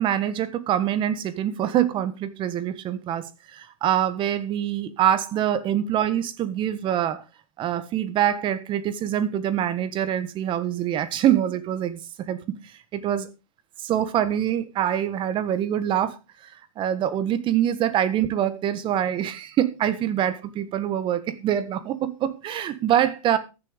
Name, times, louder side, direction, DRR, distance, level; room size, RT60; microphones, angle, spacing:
voice 1, 0.0-7.2 7.6-12.0 12.3-12.4 12.9-13.3 13.8-16.1 16.8-23.4, right 10 dB, 30° right, 1.4 m, -24 dB
14.0 x 7.5 x 5.0 m
hypercardioid pair, 140°, 18 cm